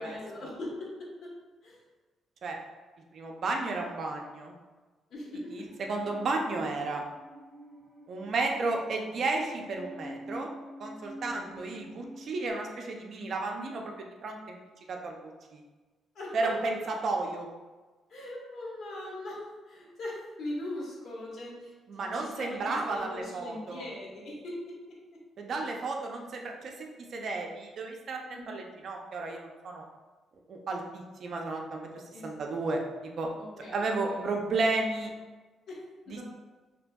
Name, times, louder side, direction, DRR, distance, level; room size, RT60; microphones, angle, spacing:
voice 1, 0.0-1.4 1.6-1.8 5.1-5.7 11.2-11.8 16.1-16.5 18.1-24.8 28.3-28.5 32.1-32.3 33.4-34.2 35.7-36.2, left 1 dB, 65° left, -4 dB, 0.9 m, -41 dB
voice 2, 3.1-4.5 5.5-7.0 8.1-10.5 10.8-14.6 14.9-15.6 16.3-17.5 21.9-23.9 25.4-26.7 27.1-29.9 30.5-33.3 33.7-35.1 36.1-36.2, right 3 dB, 60° right, 1 dB, 0.4 m, -33 dB
Musical instrument, 5.7-12.5, equal, 25° right, 0.7 m, -47 dB
2.7 x 2.6 x 2.2 m, 1.3 s
cardioid pair, 90°, 0 cm